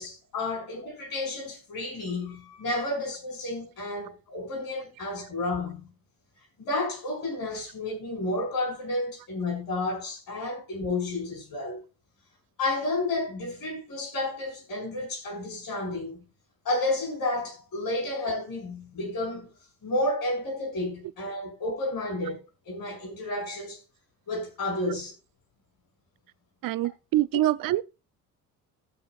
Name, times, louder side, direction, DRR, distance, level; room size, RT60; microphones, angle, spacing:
voice 1, 0.0-5.9 6.6-11.8 12.6-16.2 16.6-19.5 19.8-23.8 24.3-25.1 27.3-27.4, left 2 dB, 55° left, 5.1 m, -31 dB
voice 2, 26.6-27.8, right 15 dB, 55° right, 0.5 m, -25 dB
17.0 x 6.3 x 2.4 m
supercardioid pair, 70°, 40 cm